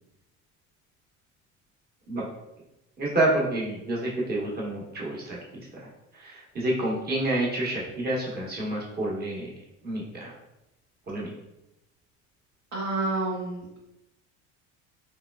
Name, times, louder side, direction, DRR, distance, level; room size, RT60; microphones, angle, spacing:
voice 1, 3.0-5.9 6.2-9.5 9.8-10.3 11.1-11.3, right 1 dB, 25° right, -3 dB, 1.2 m, -28 dB
voice 2, 12.7-13.7, right 2 dB, 50° right, -4 dB, 0.9 m, -29 dB
3.5 x 3.2 x 2.3 m, 0.91 s
supercardioid pair, 110°, 35 cm